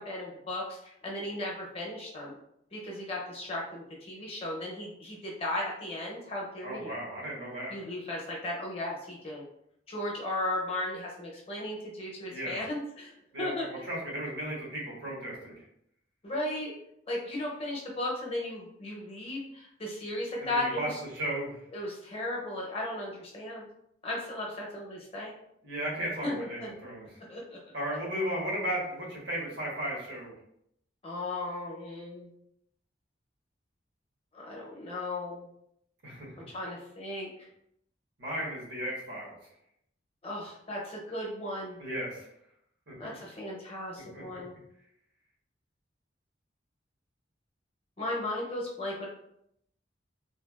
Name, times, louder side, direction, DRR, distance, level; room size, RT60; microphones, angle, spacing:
voice 1, 0.0-2.3 2.7-6.9 7.7-9.4 9.9-13.1 13.4-13.7 16.2-16.7 17.1-21.0 21.7-23.6 24.0-25.3 26.2-26.8 27.3-27.6 31.0-32.3 34.3-35.5 36.5-37.5 40.2-41.8 43.0-44.6 48.0-49.1, left 1 dB, 30° left, -3 dB, 0.7 m, -36 dB
voice 2, 6.6-7.7 12.3-12.6 13.3-15.5 20.4-21.6 25.6-27.1 27.7-30.3 36.0-36.3 38.2-39.4 41.8-42.3 42.9-43.1 44.1-44.4, right 1 dB, 85° right, -4 dB, 1.2 m, -35 dB
3.3 x 2.4 x 2.3 m, 0.75 s
head